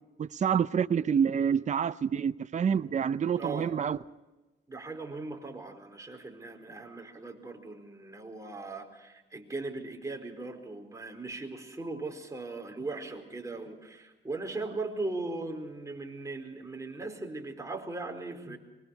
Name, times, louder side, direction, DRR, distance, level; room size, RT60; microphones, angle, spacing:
voice 1, 0.2-4.0, right 7 dB, 35° right, 0.7 m, -27 dB
voice 2, 3.4-3.7 4.7-18.6, right 3 dB, 15° right, 4.5 m, -39 dB
24.5 x 23.0 x 4.7 m
cardioid pair, 90°, 20 cm